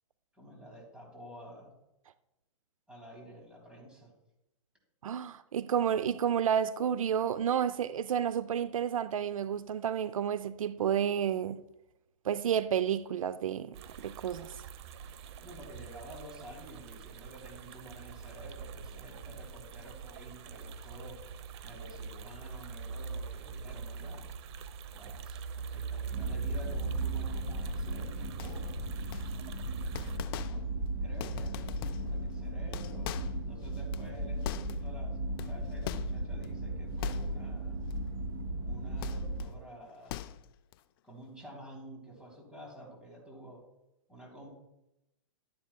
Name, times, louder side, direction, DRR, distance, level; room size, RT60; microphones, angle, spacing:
voice 1, 0.3-1.7 2.9-4.1 15.4-21.2 21.6-24.3 24.9-28.8 29.9-30.6 31.0-37.8 38.6-40.2 41.0-43.6 44.1-44.5, right 1 dB, 5° right, 3.3 m, -50 dB
voice 2, 5.0-11.6 12.2-14.5, right 9 dB, 80° right, 0.5 m, -31 dB
sound 1, 13.7-30.2, right 7 dB, 50° right, 0.8 m, -42 dB
sound 2, 26.1-39.5, right 1 dB, 30° right, 2.4 m, -36 dB
sound 3, 28.4-28.7 29.1-29.6 29.9-30.8 31.1-32.2 32.6-35.0 35.4-36.5 37.0-37.6 37.9-38.1 39.0-39.5 39.9-40.7, left 13 dB, 45° left, 0.5 m, -42 dB
12.0 x 10.5 x 2.3 m
hypercardioid pair, 135°, 17 cm